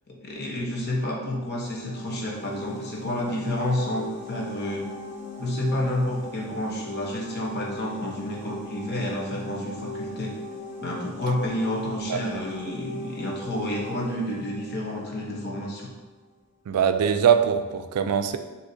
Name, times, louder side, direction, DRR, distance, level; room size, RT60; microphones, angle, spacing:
voice 1, 0.1-4.9 5.4-10.3 10.8-15.9, left 1 dB, 45° left, -2 dB, 1.0 m, -30 dB
sound 1, 1.4-16.1, left 1 dB, 85° left, 0.9 m, -40 dB
voice 2, 16.7-18.4, right 7 dB, 80° right, 8 dB, 0.4 m, -22 dB
6.4 x 2.9 x 2.7 m, 1.2 s
head